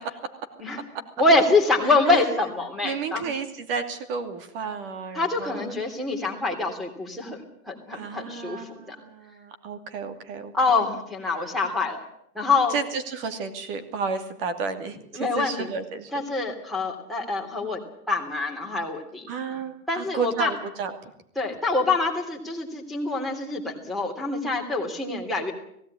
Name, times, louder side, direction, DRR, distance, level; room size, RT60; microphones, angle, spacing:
voice 1, 1.2-3.3 5.1-8.9 10.5-12.0 12.3-12.7 15.1-15.7 16.1-17.8 18.1-19.2 19.9-20.5 21.4-25.5, left 3 dB, ahead, 5 dB, 3.1 m, -25 dB
voice 2, 1.8-2.3 2.8-5.8 7.9-10.9 12.7-16.5 19.3-21.1, right 4 dB, 40° right, 8 dB, 2.7 m, -32 dB
18.5 x 17.0 x 9.8 m, 0.71 s
hypercardioid pair, 160°, 44 cm